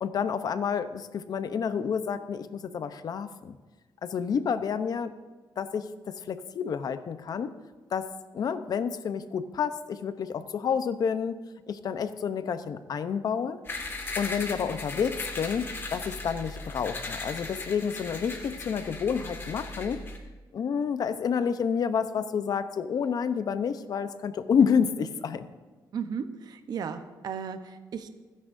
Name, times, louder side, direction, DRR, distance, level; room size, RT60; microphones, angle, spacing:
voice 1, 0.0-3.6 4.0-5.1 5.6-7.5 7.9-8.1 8.3-11.4 11.7-13.6 14.2-20.0 20.5-25.4, left 7 dB, 55° left, 11 dB, 0.8 m, -29 dB
sound 1, 13.6-20.2, left 2 dB, 30° left, 1.9 m, -37 dB
voice 2, 25.9-28.2, right 6 dB, 60° right, 8 dB, 0.9 m, -35 dB
27.5 x 10.0 x 2.7 m, 1.4 s
cardioid pair, 120°, 8 cm